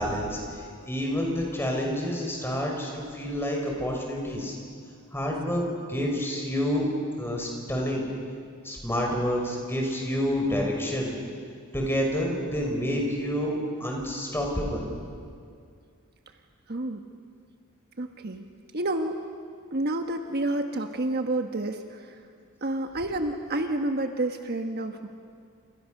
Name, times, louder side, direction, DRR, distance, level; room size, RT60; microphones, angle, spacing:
voice 1, 0.0-4.6 5.1-6.9 7.2-8.1 8.6-11.1 11.7-14.9, equal, 10° left, 0 dB, 5.5 m, -28 dB
voice 2, 16.7-17.0 18.0-18.5 18.7-19.2 19.7-22.2 22.6-25.1, right 2 dB, 50° right, 5 dB, 1.3 m, -29 dB
29.5 x 28.0 x 6.6 m, 2.2 s
head